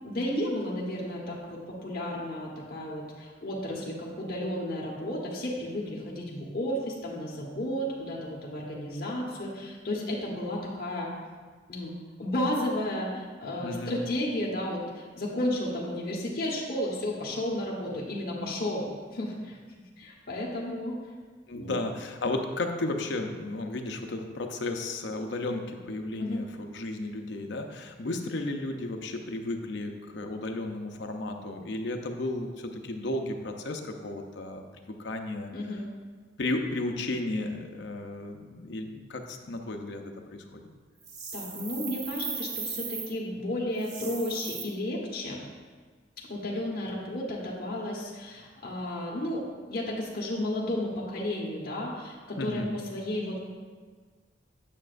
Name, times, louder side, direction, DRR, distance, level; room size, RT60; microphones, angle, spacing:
voice 1, 0.0-11.1 11.7-11.9 12.2-18.9 19.1-19.6 20.0-20.9 21.5-21.7 26.2-26.4 35.5-35.8 41.3-45.4 46.3-49.4 49.7-52.6 52.9-53.4, left 1 dB, 50° left, -4 dB, 1.2 m, -33 dB
voice 2, 13.6-14.0 21.5-34.6 35.0-35.5 36.4-40.6 52.4-52.8, left 2 dB, 65° left, 4 dB, 0.6 m, -34 dB
sound 1, 41.0-43.1 43.8-44.6, right 5 dB, 60° right, 0.9 m, -37 dB
8.5 x 6.4 x 2.5 m, 1.5 s
head